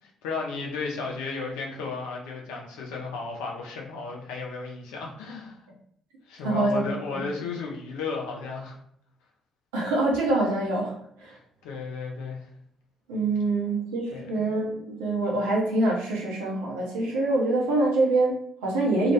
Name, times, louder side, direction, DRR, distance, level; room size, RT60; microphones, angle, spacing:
voice 1, 0.0-5.6 6.3-8.8 11.3-12.5 14.1-14.4, left 4 dB, 75° left, -1 dB, 0.5 m, -34 dB
voice 2, 6.4-6.8 7.1-7.2 9.7-11.4 13.1-19.1, right 2 dB, 80° right, -3 dB, 0.6 m, -25 dB
2.3 x 2.1 x 2.8 m, 0.68 s
hypercardioid pair, 45°, 0 cm